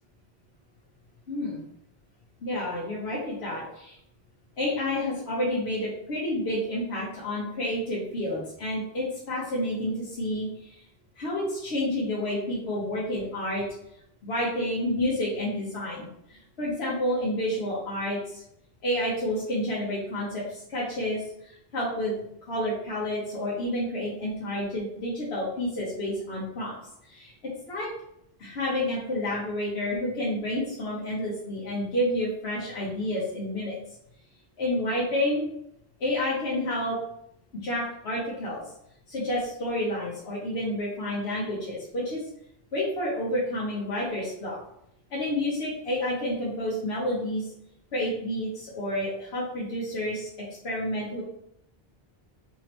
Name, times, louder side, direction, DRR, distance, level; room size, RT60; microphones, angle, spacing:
voice 1, 1.3-1.6 2.4-3.6 4.6-9.9 10.2-10.5 11.2-13.6 14.2-16.1 16.6-18.2 18.8-20.3 20.7-21.2 21.7-22.1 22.5-26.7 27.7-27.9 28.4-33.8 34.6-35.5 36.0-37.0 37.6-38.6 39.1-42.2 42.7-44.6 45.1-47.4 47.9-48.5 48.8-50.2 50.6-51.2, left 1 dB, 80° left, -6 dB, 1.2 m, -29 dB
3.4 x 3.1 x 2.9 m, 0.74 s
omnidirectional pair, 1.0 m